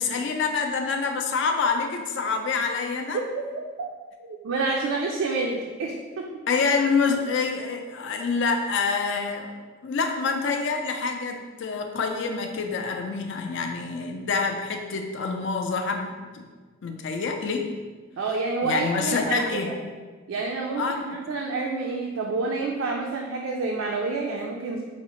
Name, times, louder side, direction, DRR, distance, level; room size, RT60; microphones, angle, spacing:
voice 1, 0.0-3.2 6.5-9.6 9.8-16.5 16.8-17.7 18.6-19.7 20.8-21.1, left 4 dB, 60° left, 4 dB, 0.4 m, -26 dB
voice 2, 4.2-6.3 18.2-19.8 20.3-24.8, right 3 dB, 80° right, -1 dB, 0.3 m, -28 dB
4.6 x 2.0 x 2.9 m, 1.4 s
head